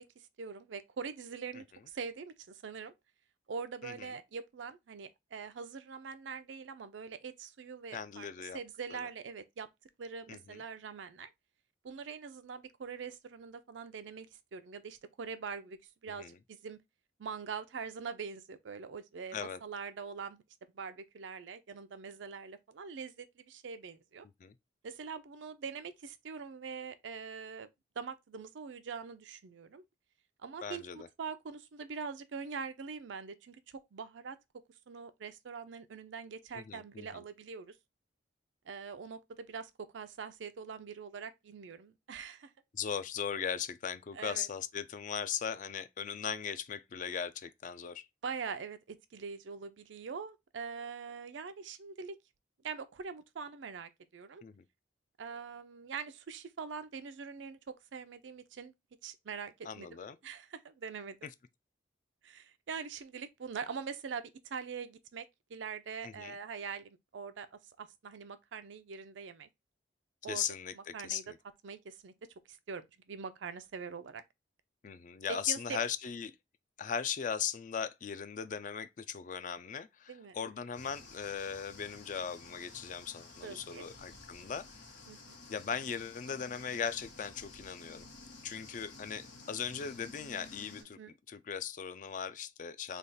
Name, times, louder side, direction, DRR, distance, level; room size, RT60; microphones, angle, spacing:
voice 1, 0.0-2.9 3.5-8.3 8.5-9.7 10.0-11.3 11.8-16.8 17.2-20.4 20.7-24.3 24.8-27.7 28.0-29.8 30.4-34.4 34.9-37.8 38.7-42.5 44.1-44.5 48.2-52.2 52.6-54.4 55.2-58.7 59.0-59.9 60.2-61.2 62.2-69.5 70.2-70.5 70.7-71.2 71.6-74.2 75.3-75.8 80.1-80.5 83.4-83.8 85.1-85.4 91.0-91.1, right 5 dB, 85° right, 0.5 m, -43 dB
voice 2, 7.9-8.6 8.9-9.1 10.3-10.6 16.2-16.4 19.3-19.6 24.4-24.5 30.6-31.1 36.5-37.3 42.7-48.1 54.4-54.6 59.6-60.2 66.0-66.3 70.3-71.4 74.8-76.3 76.8-84.8 85.5-88.1 88.4-91.0 91.3-93.0, left 7 dB, 45° left, 0.3 m, -38 dB
sound 1, 80.7-90.8, left 3 dB, 90° left, 1.3 m, -53 dB
3.3 x 2.3 x 4.0 m
head